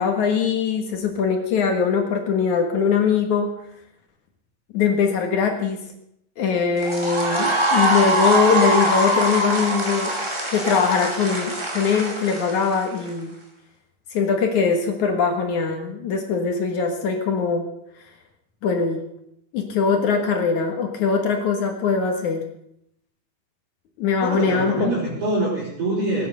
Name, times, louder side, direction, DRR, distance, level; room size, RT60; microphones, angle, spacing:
voice 1, 0.0-3.5 4.7-5.8 6.4-10.2 10.5-13.3 14.1-17.7 18.6-19.0 19.5-22.4 24.0-24.9, left 5 dB, 60° left, 4 dB, 2.7 m, -21 dB
sound 1, 6.8-13.1, right 1 dB, 10° right, 1.7 m, -23 dB
voice 2, 24.2-26.3, right 1 dB, 40° right, -8 dB, 5.7 m, -24 dB
18.5 x 9.7 x 6.7 m, 0.77 s
omnidirectional pair, 4.0 m